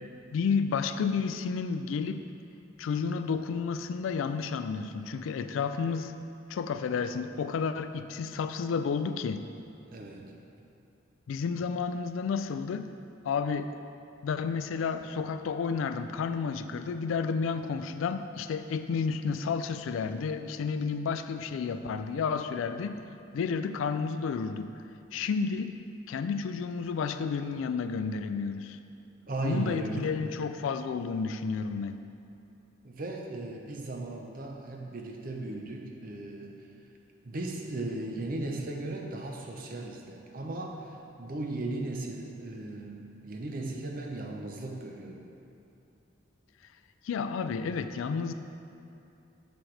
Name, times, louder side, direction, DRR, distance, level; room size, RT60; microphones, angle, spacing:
voice 1, 0.0-2.2 2.8-6.1 6.5-9.4 11.3-12.9 13.2-13.7 14.2-23.0 23.3-24.7 25.1-25.7 26.1-28.8 29.4-32.0 47.0-48.3, left 5 dB, 90° left, 10 dB, 0.3 m, -31 dB
voice 2, 9.9-10.3 29.3-30.2 32.8-36.5 37.2-45.3, right 2 dB, 45° right, 1 dB, 0.6 m, -36 dB
6.2 x 6.2 x 3.3 m, 2.8 s
head